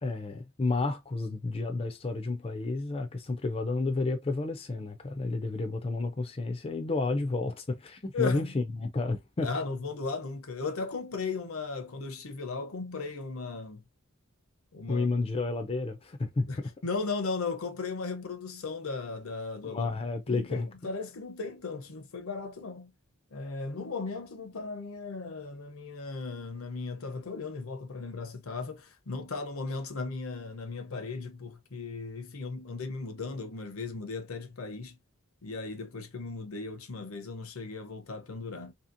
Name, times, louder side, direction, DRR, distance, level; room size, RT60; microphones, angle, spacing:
voice 1, 0.0-9.5 14.9-16.7 19.6-20.7, left 3 dB, 25° left, 0.4 m, -31 dB
voice 2, 8.1-8.5 9.4-13.8 14.7-15.1 16.5-19.9 20.3-22.9 23.3-35.0 35.4-38.7, left 4 dB, 70° left, 0.7 m, -36 dB
2.8 x 2.8 x 2.5 m
head